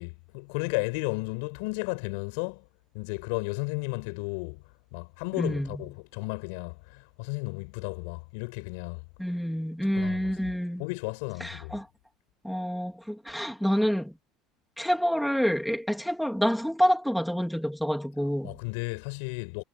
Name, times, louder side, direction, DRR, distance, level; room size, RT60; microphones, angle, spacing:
voice 1, 0.0-2.6 2.9-4.6 4.9-9.0 9.9-10.5 10.8-11.8 18.4-19.6, left 29 dB, 80° left, 6.5 m, -34 dB
voice 2, 5.4-5.8 9.2-10.8 11.4-11.9 12.4-14.1 14.8-18.6, equal, ahead, 2.5 m, -28 dB
cardioid pair, 165°, 0 cm